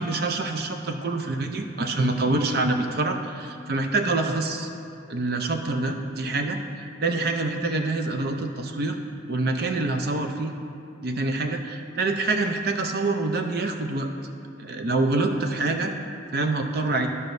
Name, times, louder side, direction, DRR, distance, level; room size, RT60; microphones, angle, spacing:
voice 1, 0.0-4.7 5.1-6.6 7.0-9.0 9.3-10.5 11.0-14.1 14.6-15.9 16.3-17.1, right 2 dB, 50° right, 5 dB, 0.5 m, -26 dB
13.0 x 5.4 x 2.6 m, 2.5 s
head